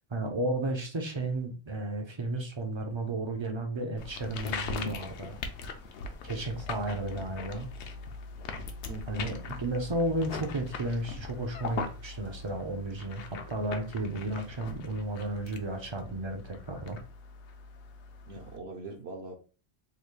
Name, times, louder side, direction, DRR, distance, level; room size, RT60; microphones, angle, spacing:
voice 1, 0.1-5.4 6.2-7.7 9.1-17.0, right 2 dB, 45° right, 4 dB, 0.4 m, -33 dB
sound 1, 4.0-18.6, left 4 dB, 75° left, 0.9 m, -41 dB
voice 2, 8.9-9.4 18.3-19.4, right 3 dB, 70° right, 1 dB, 0.9 m, -42 dB
3.9 x 2.3 x 3.2 m, 0.35 s
omnidirectional pair, 1.2 m